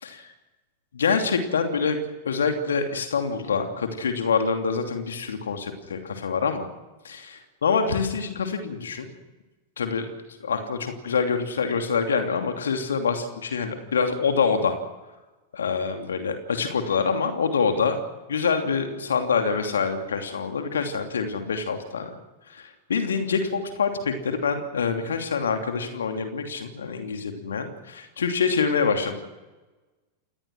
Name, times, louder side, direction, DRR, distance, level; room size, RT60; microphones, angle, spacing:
voice 1, 0.9-2.0 2.2-6.7 7.0-9.1 9.8-10.1 10.4-14.8 15.5-18.0 18.3-22.2 22.5-29.2, left 5 dB, 70° left, 5 dB, 2.8 m, -26 dB
28.0 x 20.0 x 6.3 m, 1.1 s
figure-of-eight pair, 90°, 0 cm